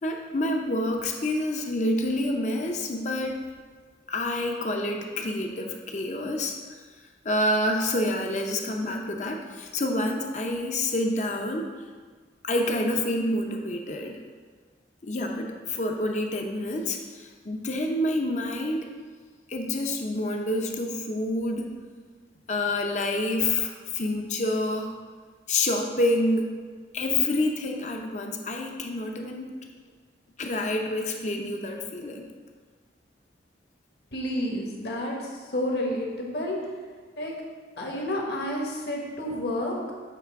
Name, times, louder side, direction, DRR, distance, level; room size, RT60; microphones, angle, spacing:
voice 1, 0.0-3.4 4.1-6.8 7.2-11.7 12.4-14.2 15.0-18.9 19.5-21.7 22.5-24.9 25.5-26.6 26.9-29.5 30.4-32.3, left 1 dB, 40° left, 2 dB, 0.6 m, -28 dB
voice 2, 34.1-36.6 37.2-37.3 37.8-39.7, left 1 dB, 60° left, -1 dB, 1.1 m, -30 dB
8.0 x 3.3 x 4.6 m, 1.5 s
head